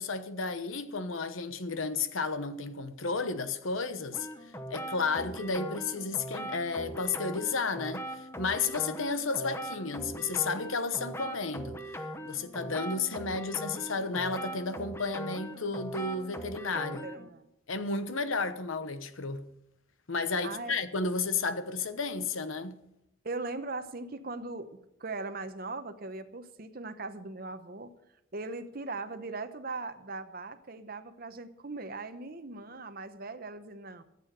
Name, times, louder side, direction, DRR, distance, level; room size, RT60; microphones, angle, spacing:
voice 1, 0.0-4.3 4.7-11.8 12.2-17.1 17.7-19.4 20.1-22.8, left 4 dB, 80° left, 1.0 m, -32 dB
sound 1, 4.1-17.3, equal, 10° left, 0.8 m, -40 dB
voice 2, 17.0-17.5 20.4-20.7 23.2-27.9 28.3-34.0, right 3 dB, 45° right, 0.9 m, -39 dB
14.0 x 8.4 x 6.6 m
head